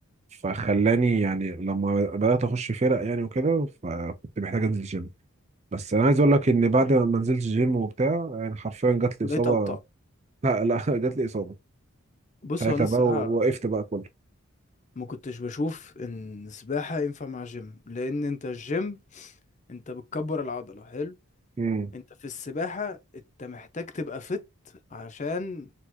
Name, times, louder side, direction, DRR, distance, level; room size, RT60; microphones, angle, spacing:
voice 1, 0.4-5.1 5.7-9.8 10.4-11.5 12.6-14.0 21.6-21.9, right 3 dB, 30° right, 0.4 m, -24 dB
voice 2, 9.2-9.8 12.4-13.4 15.0-19.3 19.7-21.2 21.9-24.4 24.9-25.7, left 3 dB, 35° left, 0.5 m, -33 dB
4.2 x 2.8 x 2.3 m
head